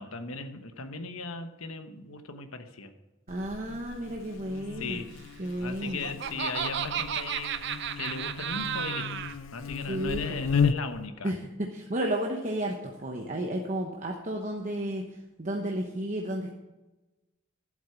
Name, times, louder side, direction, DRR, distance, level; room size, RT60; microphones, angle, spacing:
voice 1, 0.0-2.9 4.8-5.1 5.6-9.2 9.5-11.3, left 4 dB, 85° left, 8 dB, 1.1 m, -38 dB
Buzz, 3.3-11.1, left 6 dB, 65° left, 0.6 m, -34 dB
voice 2, 3.3-5.0 5.4-6.0 9.9-10.2 11.2-16.5, right 1 dB, 35° right, 1 dB, 1.0 m, -32 dB
Laughter, 5.6-9.4, right 8 dB, 55° right, 0.6 m, -33 dB
11.0 x 8.0 x 5.9 m, 1.1 s
head